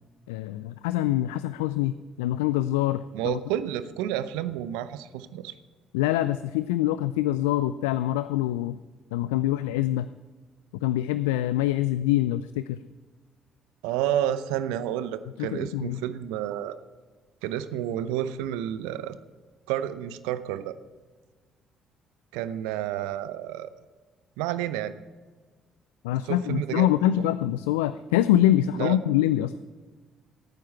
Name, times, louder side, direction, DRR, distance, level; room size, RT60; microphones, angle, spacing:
voice 1, 0.3-3.4 5.9-8.8 9.1-10.1 10.8-12.8 15.4-16.0 26.0-29.5, left 13 dB, 80° left, 14 dB, 0.3 m, -25 dB
voice 2, 3.1-5.5 13.8-16.8 17.4-19.2 19.7-20.8 22.3-23.7 24.4-25.0 26.3-26.9 28.8-29.0, right 11 dB, 75° right, 13 dB, 0.6 m, -30 dB
18.5 x 9.3 x 4.5 m, 1.4 s
hypercardioid pair, 50°, 0 cm